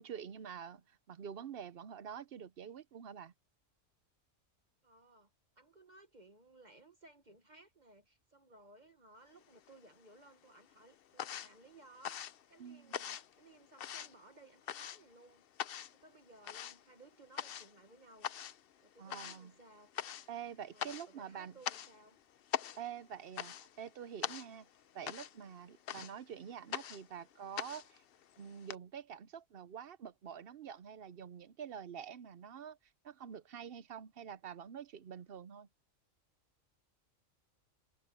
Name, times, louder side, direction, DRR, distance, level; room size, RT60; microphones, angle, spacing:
voice 1, 0.0-3.3 12.6-12.9 19.0-19.5 20.3-21.6 22.8-24.7 24.9-28.0 28.4-32.8 33.0-35.7, right 8 dB, 55° right, 0.8 m, -47 dB
voice 2, 4.8-5.3 5.6-15.5 15.9-18.3 18.8-19.9 20.7-22.2, right 2 dB, 35° right, 1.2 m, -60 dB
sound 1, 9.4-10.2 10.5-28.8, left 10 dB, 55° left, 0.7 m, -44 dB
omnidirectional pair, 1.4 m